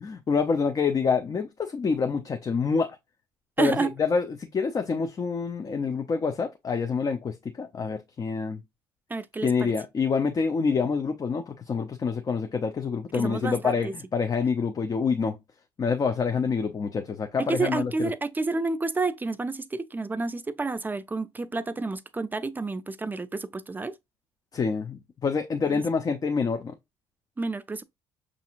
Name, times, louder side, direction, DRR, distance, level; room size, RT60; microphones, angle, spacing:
voice 1, 0.0-3.0 3.6-8.6 9.4-15.4 15.8-18.1 24.5-26.7, left 5 dB, 40° left, 0.7 m, -27 dB
voice 2, 3.6-3.9 9.1-9.7 13.1-13.9 17.4-23.9 25.7-25.8 27.4-27.8, right 3 dB, 20° right, 0.5 m, -30 dB
6.2 x 2.7 x 2.5 m
supercardioid pair, 70°, 10 cm